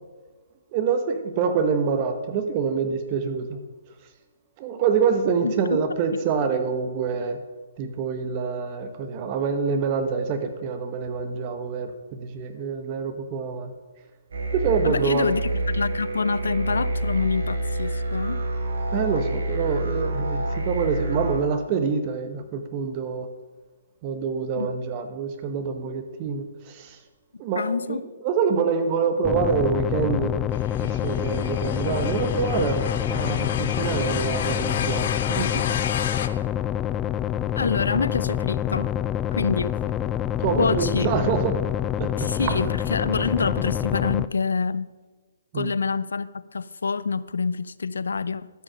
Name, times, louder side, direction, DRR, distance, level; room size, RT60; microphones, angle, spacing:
voice 1, 0.7-3.6 4.6-7.4 7.8-13.7 14.5-15.3 18.9-23.3 24.0-27.0 27.4-30.4 30.8-32.8 33.0-35.9 40.4-41.6 42.0-42.6 45.5-45.7, right 6 dB, 30° right, 8 dB, 1.0 m, -26 dB
voice 2, 5.4-5.8 14.8-18.4 24.6-24.7 27.5-28.1 37.6-38.9 39.3-39.8 40.6-41.1 42.2-44.9 45.5-48.5, left 4 dB, 85° left, 17 dB, 0.5 m, -26 dB
sound 1, 14.3-21.4, right 1 dB, 75° right, 3.6 m, -27 dB
sound 2, 29.2-44.3, left 11 dB, 15° left, 0.3 m, -27 dB
sound 3, 30.5-36.3, left 8 dB, 50° left, 0.8 m, -32 dB
12.5 x 6.3 x 6.3 m, 1.3 s
hypercardioid pair, 150°, 0 cm